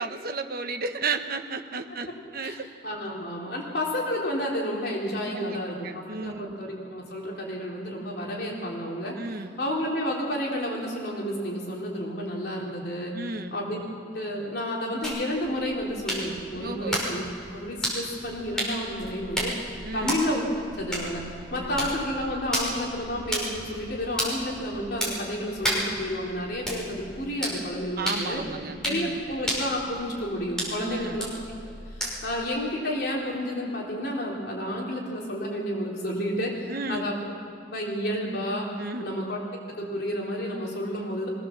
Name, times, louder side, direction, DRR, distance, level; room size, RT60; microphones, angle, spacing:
voice 1, 0.0-2.7 5.3-6.6 9.2-9.5 13.1-13.6 16.6-17.1 19.8-20.2 21.6-21.8 28.0-29.2 30.8-31.2 36.7-37.1 38.8-39.1, right 3 dB, 55° right, 7 dB, 1.2 m, -33 dB
voice 2, 2.8-9.2 9.6-13.2 13.5-13.8 14.1-20.4 20.8-28.4 28.8-31.3 31.9-37.1 37.7-38.7 39.0-39.4 39.8-41.3, equal, 60° left, -3 dB, 3.6 m, -31 dB
sound 1, 15.0-32.4, equal, 5° left, 5.9 m, -34 dB
23.0 x 17.5 x 7.3 m, 2.5 s
head